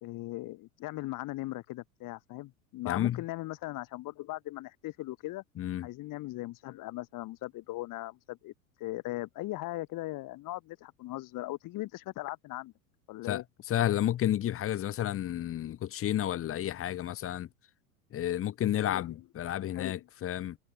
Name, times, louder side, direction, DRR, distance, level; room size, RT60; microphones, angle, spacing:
voice 1, 0.0-5.4 5.8-8.5 8.8-12.7 13.1-13.4 18.8-19.2 19.7-20.0, left 18 dB, 45° left, 4.0 m, -39 dB
voice 2, 2.9-3.2 5.6-5.9 13.3-13.4 13.7-17.5 18.1-20.6, left 12 dB, 30° left, 1.2 m, -31 dB
hypercardioid pair, 85°, 43 cm